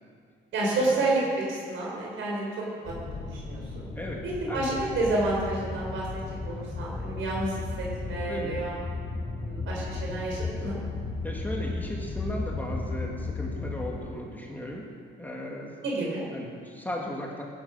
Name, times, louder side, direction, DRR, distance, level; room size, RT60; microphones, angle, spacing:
voice 1, 0.5-1.2 1.5-2.5 2.8-3.6 4.5-6.1 6.4-8.8 9.4-10.8 15.8-16.2, right 2 dB, 75° right, -4 dB, 4.8 m, -29 dB
sound 1, 2.8-13.9, left 3 dB, 60° left, 3.5 m, -35 dB
voice 2, 4.5-5.0 8.3-8.6 11.2-14.8 15.2-15.7 16.3-17.4, left 1 dB, 10° left, -2 dB, 2.8 m, -36 dB
17.0 x 12.0 x 6.2 m, 2.1 s
cardioid pair, 90°, 20 cm